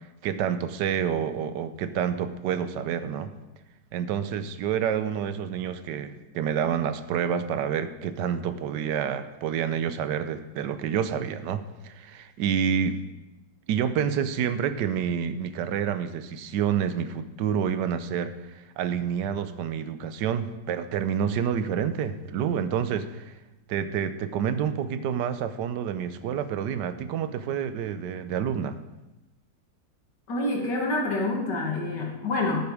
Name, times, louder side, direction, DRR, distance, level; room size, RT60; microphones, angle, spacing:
voice 1, 0.2-3.3 3.9-13.0 13.7-23.3 23.7-28.8, right 8 dB, 85° right, 12 dB, 1.3 m, -28 dB
voice 2, 30.3-32.7, left 2 dB, 80° left, 0 dB, 2.4 m, -27 dB
10.5 x 8.4 x 4.9 m, 1.0 s
omnidirectional pair, 1.8 m